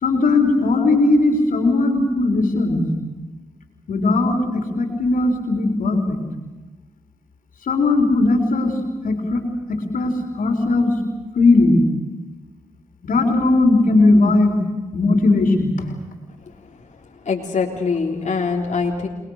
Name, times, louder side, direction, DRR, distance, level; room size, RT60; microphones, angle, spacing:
voice 1, 0.0-2.8 3.9-6.2 7.6-8.7 9.0-9.4 9.9-10.9 11.3-11.8 13.0-14.5 14.9-15.7, left 2 dB, 80° left, 4 dB, 4.3 m, -17 dB
voice 2, 17.3-19.1, left 5 dB, 55° left, 0 dB, 3.6 m, -23 dB
29.5 x 21.0 x 6.6 m, 1.2 s
cardioid pair, 50°, 14 cm